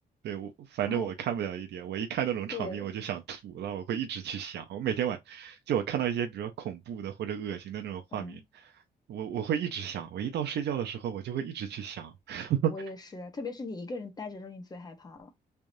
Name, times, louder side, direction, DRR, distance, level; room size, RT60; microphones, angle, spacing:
voice 1, 0.2-8.8 9.1-12.7, right 9 dB, 85° right, 0.5 m, -33 dB
voice 2, 2.5-2.9 8.1-8.4 12.7-15.3, left 3 dB, 25° left, 0.9 m, -39 dB
3.6 x 3.4 x 2.5 m
wide cardioid pair, 150°, 17 cm